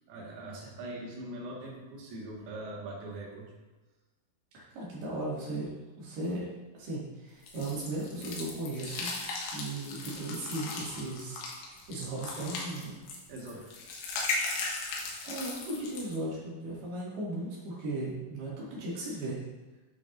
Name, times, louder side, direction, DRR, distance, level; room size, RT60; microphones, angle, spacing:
voice 1, 0.1-3.5 13.3-13.7, right 1 dB, 85° right, -3 dB, 4.4 m, -42 dB
voice 2, 4.5-5.7 6.0-6.5 6.7-9.1 9.4-11.4 11.7-12.9 15.2-19.4, right 2 dB, 55° right, -7 dB, 4.0 m, -36 dB
sound 1, 7.5-16.2, left 3 dB, 70° left, 3.3 m, -37 dB
10.5 x 7.2 x 2.7 m, 1.2 s
omnidirectional pair, 5.7 m